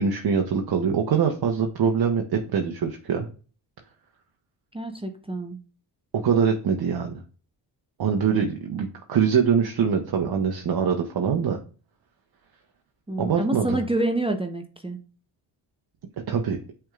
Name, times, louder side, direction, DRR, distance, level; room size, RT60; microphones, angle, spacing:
voice 1, 0.0-3.3 6.1-7.2 8.0-11.6 13.2-13.8 16.3-16.6, right 6 dB, 50° right, 3 dB, 0.9 m, -23 dB
voice 2, 4.7-5.6 13.1-15.0, right 1 dB, 10° right, 4 dB, 0.7 m, -27 dB
6.2 x 3.5 x 2.4 m, 0.37 s
supercardioid pair, 55°, 49 cm